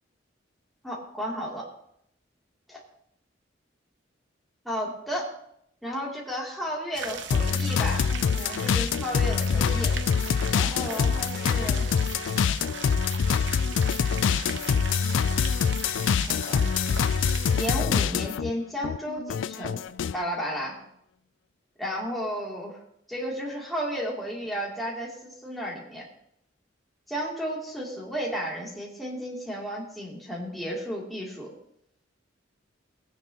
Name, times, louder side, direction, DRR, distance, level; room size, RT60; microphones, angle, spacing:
voice 1, 0.8-1.7 4.6-5.3 5.8-8.1 8.3-9.9 10.5-11.8 16.1-16.7 17.5-19.8 20.1-20.8 21.8-22.8 23.1-26.1 27.1-31.5, equal, ahead, -5 dB, 2.8 m, -33 dB
sound 1, 6.9-17.7, right 6 dB, 75° right, 0.8 m, -39 dB
sound 2, 7.3-18.5 18.8-20.2, left 6 dB, 85° left, 0.4 m, -25 dB
20.0 x 9.4 x 2.9 m, 0.72 s
head